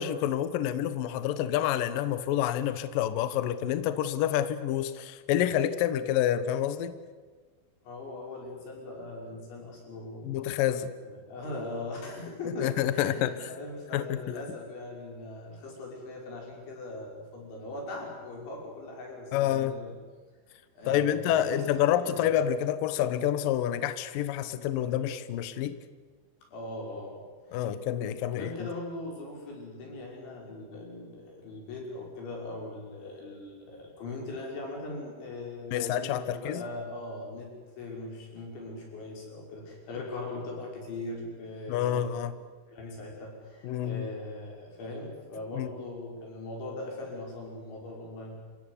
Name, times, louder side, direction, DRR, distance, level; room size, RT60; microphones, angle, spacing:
voice 1, 0.0-6.9 10.2-10.9 12.6-13.4 13.9-14.2 19.3-19.8 20.9-25.8 27.5-28.7 35.7-36.6 41.7-42.3 43.6-44.1 45.5-45.7, left 11 dB, 85° left, 13 dB, 1.9 m, -28 dB
voice 2, 7.8-10.4 11.0-19.9 20.5-22.3 26.5-27.2 27.5-27.6 28.2-42.1 42.7-48.4, left 2 dB, 65° left, -1 dB, 8.3 m, -40 dB
28.0 x 16.5 x 9.8 m, 1.4 s
omnidirectional pair, 5.8 m